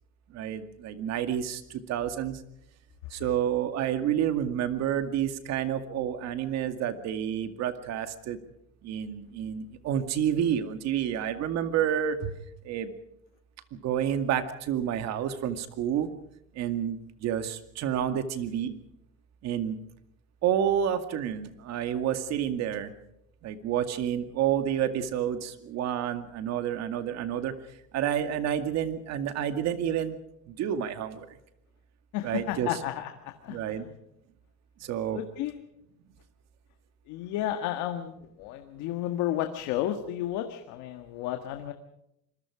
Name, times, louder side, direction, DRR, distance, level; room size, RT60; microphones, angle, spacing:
voice 1, 0.3-2.4 3.1-8.4 8.8-12.4 12.6-12.9 13.7-16.1 16.5-18.7 19.4-19.8 20.4-22.9 23.4-30.2 30.5-31.4 32.2-32.8 33.5-33.9 34.8-35.2, right 9 dB, 65° right, 8 dB, 2.3 m, -29 dB
voice 2, 32.1-33.1 33.4-33.8 35.1-35.6 37.1-41.7, left 12 dB, 85° left, 6 dB, 1.7 m, -32 dB
26.5 x 21.5 x 5.0 m, 0.78 s
cardioid pair, 125°, 29 cm